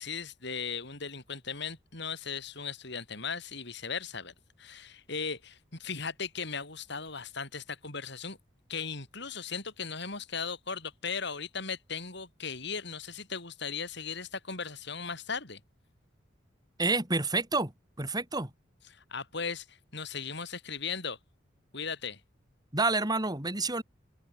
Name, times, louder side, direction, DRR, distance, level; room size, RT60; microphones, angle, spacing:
voice 1, 0.0-4.3 4.6-8.4 8.7-15.6 18.9-21.2 21.7-22.2, left 5 dB, 65° left, 7.5 m, -37 dB
voice 2, 16.8-17.7 18.0-18.5 22.7-23.8, right 3 dB, 20° right, 3.8 m, -28 dB
open air
head